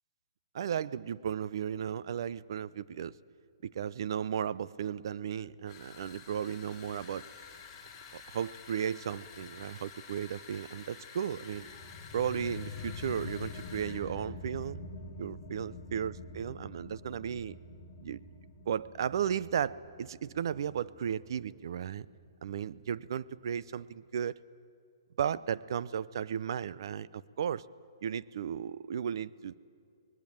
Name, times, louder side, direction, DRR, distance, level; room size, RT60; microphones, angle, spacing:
voice 1, 0.5-3.1 3.6-7.3 8.1-11.7 12.1-14.9 15.2-17.6 18.0-18.2 18.7-22.1 22.4-24.4 25.2-27.6 28.0-29.6, right 8 dB, 55° right, 18 dB, 0.6 m, -35 dB
sound 1, 5.7-14.0, left 6 dB, 20° left, 4.9 m, -50 dB
sound 2, 11.5-22.6, left 4 dB, 35° left, 1.5 m, -46 dB
24.5 x 19.5 x 8.8 m, 2.5 s
hypercardioid pair, 155°, 3 cm